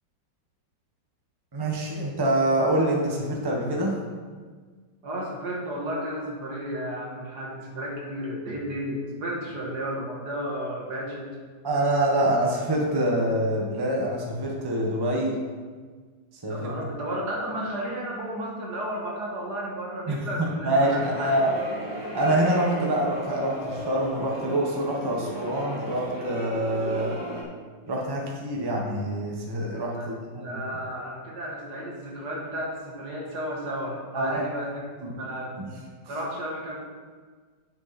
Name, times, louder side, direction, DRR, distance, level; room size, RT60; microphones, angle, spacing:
voice 1, 1.5-4.0 11.6-15.3 16.4-16.7 20.1-21.5 22.1-27.1 27.9-30.6 34.1-34.4 35.0-35.1 35.6-35.7, right 1 dB, 15° right, -2 dB, 1.1 m, -25 dB
voice 2, 5.0-11.3 16.5-21.5 29.9-30.1 30.4-34.8 35.1-35.6 36.1-36.8, right 1 dB, 60° right, -2 dB, 2.0 m, -33 dB
sound 1, 20.8-27.4, equal, 40° right, 2.4 m, -35 dB
9.5 x 6.8 x 4.3 m, 1.5 s
omnidirectional pair, 2.1 m